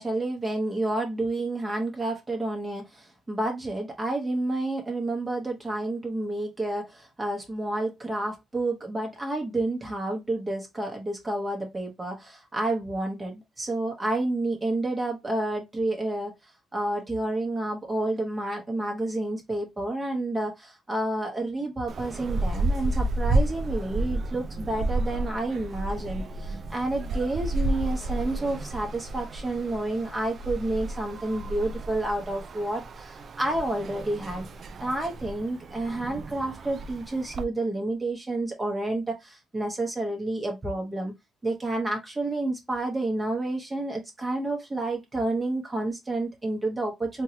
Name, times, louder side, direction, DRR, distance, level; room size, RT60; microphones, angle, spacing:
voice 1, 0.0-34.5 34.8-41.1 41.4-47.2, right 2 dB, 20° right, 1.2 m, -30 dB
sound 1, 21.9-37.4, right 2 dB, 50° right, 0.5 m, -31 dB
3.7 x 2.9 x 2.7 m
cardioid pair, 90°, 0 cm